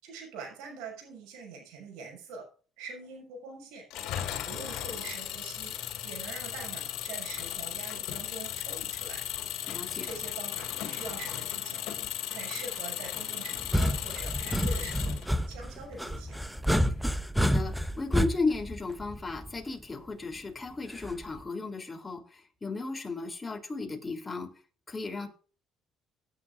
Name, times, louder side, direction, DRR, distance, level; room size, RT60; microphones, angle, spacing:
voice 1, 0.0-2.4 2.8-3.8 4.4-5.7 6.0-9.2 10.0-11.8 12.3-15.2 15.5-16.4, right 4 dB, 85° right, 1 dB, 6.6 m, -44 dB
Engine, 3.9-15.5, left 11 dB, 80° left, 2.6 m, -36 dB
sound 1, 4.3-16.9, right 2 dB, 35° right, 7.1 m, -59 dB
voice 2, 9.7-10.1 17.3-24.5 24.9-25.3, left 3 dB, 20° left, 3 dB, 3.2 m, -34 dB
sound 2, 13.6-19.6 21.0-21.4, equal, ahead, 1.0 m, -29 dB
17.5 x 9.8 x 2.5 m, 0.38 s
supercardioid pair, 85°, 0 cm